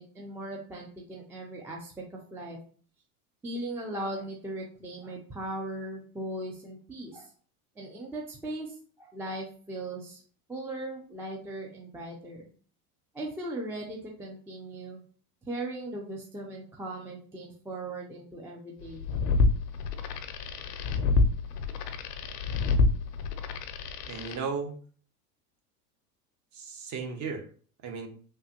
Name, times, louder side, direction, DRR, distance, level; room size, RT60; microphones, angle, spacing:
voice 1, 0.0-2.6 3.4-7.3 7.8-10.2 10.5-12.5 13.1-15.0 15.5-19.0, right 1 dB, 5° right, -1 dB, 0.3 m, -38 dB
sound 1, 18.9-24.4, left 3 dB, 85° left, 0.6 m, -27 dB
voice 2, 24.1-24.8 26.5-27.4 27.8-28.1, right 5 dB, 35° right, 4 dB, 0.8 m, -35 dB
3.3 x 2.2 x 2.8 m, 0.44 s
hypercardioid pair, 95°, 47 cm